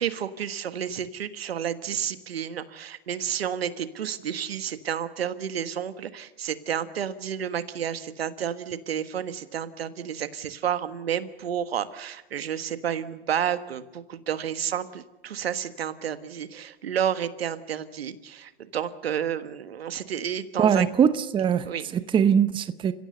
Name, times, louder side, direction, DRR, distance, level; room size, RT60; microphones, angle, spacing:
voice 1, 0.0-20.9 21.6-21.8, right 9 dB, 80° right, 1.5 m, -31 dB
voice 2, 20.6-21.7 21.9-22.9, right 8 dB, 15° right, 0.8 m, -21 dB
30.0 x 16.0 x 6.7 m
hypercardioid pair, 110°, 30 cm